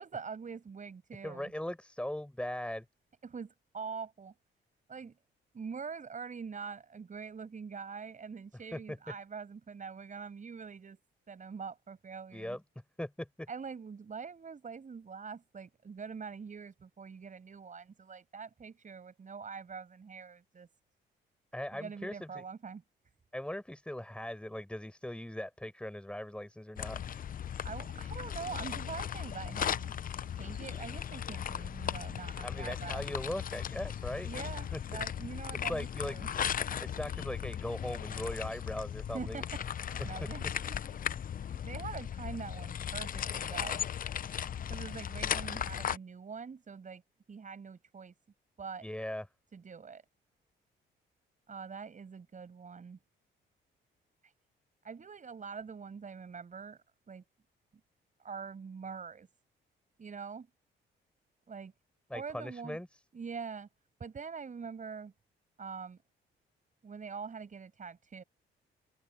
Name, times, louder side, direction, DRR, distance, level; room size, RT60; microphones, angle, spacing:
voice 1, 0.0-1.5 3.2-4.3 4.9-5.1 5.5-11.0 11.3-12.6 13.5-20.7 21.7-22.8 27.6-29.9 30.3-33.0 34.2-36.3 39.1-41.0 41.4-43.8 44.7-47.0 47.3-48.1 48.6-48.9 49.5-50.0 51.5-53.0 54.2-54.3 54.8-57.2 58.2-59.3 60.0-60.5 61.5-61.7 62.1-62.8 63.1-63.7 64.0-65.1 65.6-66.0 66.8-68.2, right 5 dB, 40° right, 7.6 m, -44 dB
voice 2, 1.2-2.8 8.7-8.8 12.3-12.6 13.0-13.5 21.5-22.4 23.3-27.0 32.4-34.3 34.7-34.8 35.7-36.2 36.8-39.4 40.0-40.3 48.8-49.3 62.1-62.9, left 1 dB, 5° left, 5.9 m, -39 dB
sound 1, 26.8-46.0, left 9 dB, 45° left, 0.7 m, -37 dB
cardioid pair, 90°, 20 cm